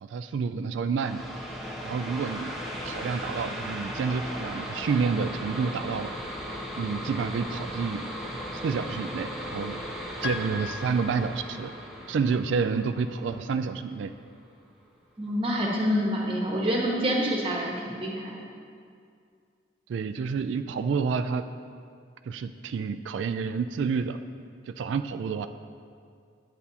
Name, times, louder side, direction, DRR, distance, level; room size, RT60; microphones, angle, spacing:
voice 1, 0.0-1.2 1.8-2.5 2.8-6.1 6.8-8.0 8.5-9.8 10.2-11.7 12.1-14.1 19.9-21.4 22.3-24.2 24.7-25.5, right 5 dB, 85° right, 9 dB, 0.3 m, -29 dB
sound 1, 1.0-14.3, equal, ahead, 0.9 m, -37 dB
Piano, 10.2-11.9, left 5 dB, 65° left, 0.6 m, -38 dB
voice 2, 15.2-18.4, equal, 30° right, -3 dB, 1.3 m, -27 dB
10.5 x 8.0 x 2.8 m, 2.3 s
head